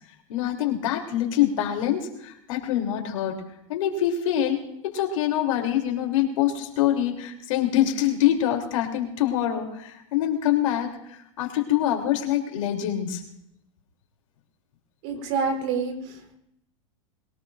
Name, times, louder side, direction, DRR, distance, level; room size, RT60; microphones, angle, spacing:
voice 1, 0.3-3.4 3.7-4.6 4.8-13.2, left 11 dB, 70° left, 2 dB, 3.2 m, -25 dB
voice 2, 15.0-16.4, right 5 dB, 55° right, 5 dB, 3.8 m, -28 dB
22.0 x 19.0 x 2.6 m, 0.80 s
hypercardioid pair, 115°, 17 cm